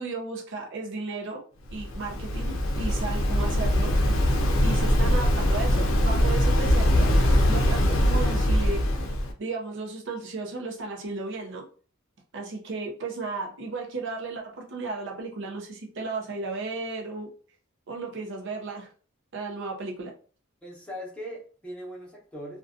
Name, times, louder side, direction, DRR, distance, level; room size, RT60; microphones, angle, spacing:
voice 1, 0.0-1.4 1.7-3.9 4.6-7.1 7.5-8.9 9.4-11.6 12.3-17.3 17.9-18.9 19.3-20.1, right 3 dB, 60° right, 1 dB, 0.5 m, -34 dB
Waves surf, 1.7-9.3, equal, 70° left, 0.5 m, -22 dB
voice 2, 20.6-22.6, equal, 5° left, -5 dB, 0.9 m, -39 dB
2.5 x 2.2 x 2.4 m, 0.40 s
head